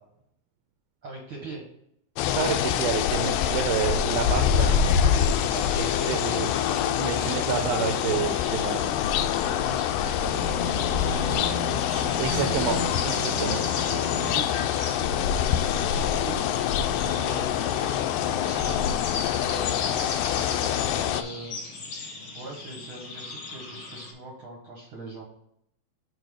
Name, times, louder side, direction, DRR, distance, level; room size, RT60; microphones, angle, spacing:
voice 1, 1.0-1.6 4.6-6.5 7.1-7.8 9.4-11.7 13.3-20.3 20.7-21.6 22.3-25.3, right 2 dB, 60° right, -2 dB, 1.4 m, -41 dB
sound 1, 2.2-21.2, left 9 dB, 80° left, 2.0 m, -25 dB
voice 2, 2.3-4.7 6.1-6.5 7.0-8.9 12.2-13.6, right 9 dB, 85° right, 3 dB, 2.5 m, -29 dB
sound 2, 5.1-24.1, left 3 dB, 50° left, 2.3 m, -38 dB
sound 3, 10.4-15.4 15.7-15.8, equal, 65° left, 2.2 m, -36 dB
6.3 x 4.6 x 4.8 m, 0.75 s
omnidirectional pair, 4.3 m